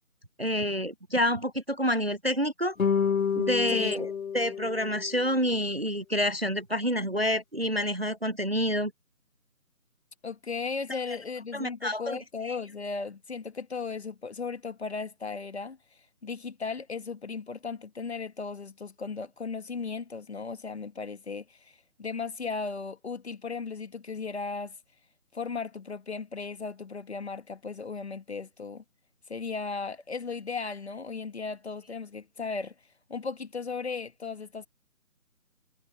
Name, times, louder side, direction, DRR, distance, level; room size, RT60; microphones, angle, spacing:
voice 1, 0.4-2.8 3.3-8.9 11.5-12.2 12.4-12.6, equal, 45° right, 0.5 m, -28 dB
sound 1, 2.8-5.3, left 7 dB, 60° left, 1.2 m, -29 dB
voice 2, 3.7-4.1 10.2-15.8 16.2-24.8 25.3-28.8 29.3-32.7 33.1-34.7, left 4 dB, 45° left, 1.9 m, -36 dB
figure-of-eight pair, 165°, 46 cm